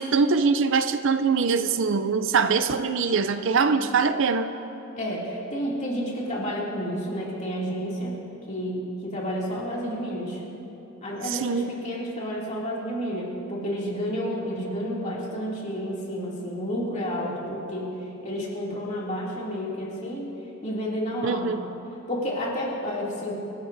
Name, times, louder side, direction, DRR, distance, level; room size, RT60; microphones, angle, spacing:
voice 1, 0.0-4.5 11.2-11.7 21.2-21.6, right 5 dB, 60° right, 10 dB, 0.5 m, -23 dB
voice 2, 5.0-8.1 8.5-10.4 11.0-17.9 18.2-20.3 20.6-21.5 22.1-23.3, equal, 35° left, -5 dB, 2.7 m, -30 dB
26.0 x 12.5 x 2.7 m, 2.9 s
head